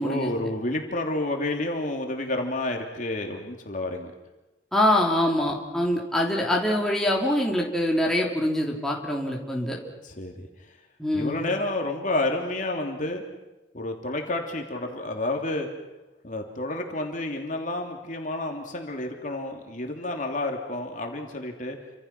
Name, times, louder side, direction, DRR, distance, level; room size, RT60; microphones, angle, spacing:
voice 1, 0.0-4.1 10.0-10.8 11.1-13.2 13.7-15.7 16.2-21.8, left 2 dB, 45° left, 2 dB, 3.0 m, -30 dB
voice 2, 4.7-9.8 11.0-11.4, left 1 dB, ahead, -2 dB, 3.4 m, -24 dB
30.0 x 26.0 x 6.1 m, 1.1 s
head